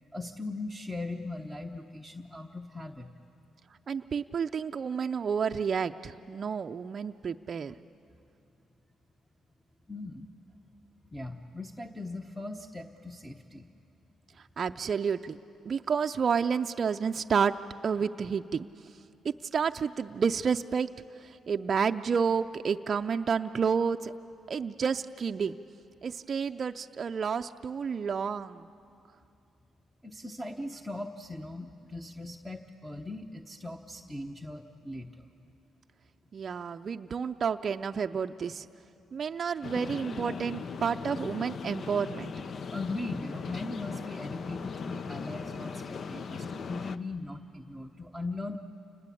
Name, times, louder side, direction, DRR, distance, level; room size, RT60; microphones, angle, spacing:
voice 1, 0.1-3.1 9.9-10.3 11.1-13.7 30.0-35.3 42.7-48.6, left 2 dB, 5° left, 3 dB, 1.1 m, -39 dB
voice 2, 3.9-7.7 14.6-15.4 15.6-17.5 17.8-18.7 19.2-20.9 21.2-24.1 24.5-25.6 26.0-28.7 36.3-38.7 39.1-42.5, right 6 dB, 45° right, 6 dB, 0.5 m, -30 dB
sound 1, 39.6-47.0, left 5 dB, 50° left, 0.7 m, -39 dB
28.5 x 19.5 x 8.5 m, 2.6 s
cardioid pair, 90°, 0 cm